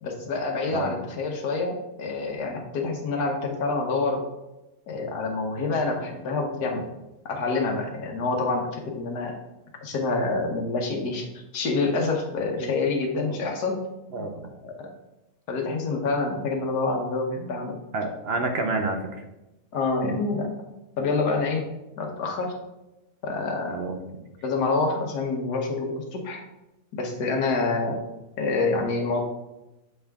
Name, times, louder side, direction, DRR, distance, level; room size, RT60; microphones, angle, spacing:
voice 1, 0.0-4.2 4.9-6.9 7.2-9.3 9.8-11.2 11.5-13.8 14.2-14.3 14.6-14.9 15.5-17.8 19.7-20.5 21.0-21.7 22.0-22.5 23.2-23.8 24.4-26.4 26.9-28.0 28.4-29.2, left 3 dB, 90° left, 3 dB, 1.6 m, -27 dB
voice 2, 14.1-14.5 17.9-19.0 23.7-24.3, right 3 dB, 55° right, 5 dB, 0.7 m, -29 dB
7.7 x 4.3 x 3.5 m, 0.97 s
omnidirectional pair, 1.6 m